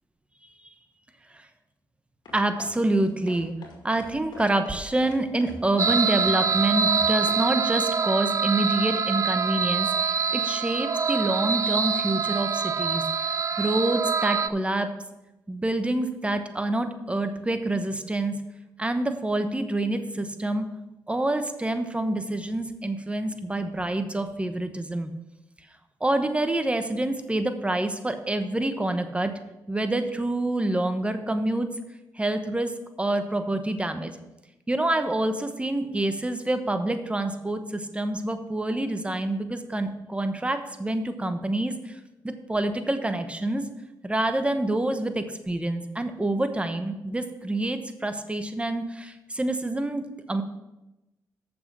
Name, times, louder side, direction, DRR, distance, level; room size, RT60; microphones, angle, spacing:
sound 1, 2.3-7.4, left 2 dB, 65° left, 2.1 m, -44 dB
voice 1, 2.3-3.5 3.8-14.9 15.5-18.4 18.8-20.7 21.1-25.1 26.0-29.3 29.7-31.7 32.2-34.1 34.7-42.0 42.2-43.6 44.0-50.0 50.3-50.4, right 1 dB, 15° right, 8 dB, 1.0 m, -27 dB
sound 2, 5.8-14.5, right 6 dB, 45° right, 0.4 m, -25 dB
7.0 x 6.1 x 6.0 m, 0.97 s
cardioid pair, 65°, 8 cm